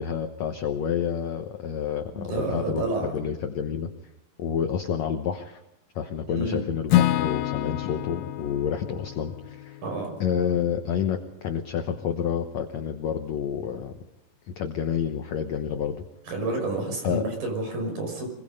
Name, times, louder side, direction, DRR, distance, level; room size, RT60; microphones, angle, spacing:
voice 1, 0.0-2.9 3.1-3.9 4.4-5.6 6.0-9.8 10.2-13.9 14.6-16.0 17.0-17.2, left 8 dB, 60° left, 6 dB, 2.1 m, -29 dB
voice 2, 2.1-3.1 6.2-6.6 9.8-10.1 16.3-18.3, right 2 dB, 80° right, 3 dB, 7.5 m, -29 dB
Acoustic guitar / Strum, 6.9-10.9, left 14 dB, 85° left, 2.6 m, -28 dB
24.0 x 22.0 x 5.5 m, 0.96 s
omnidirectional pair, 4.0 m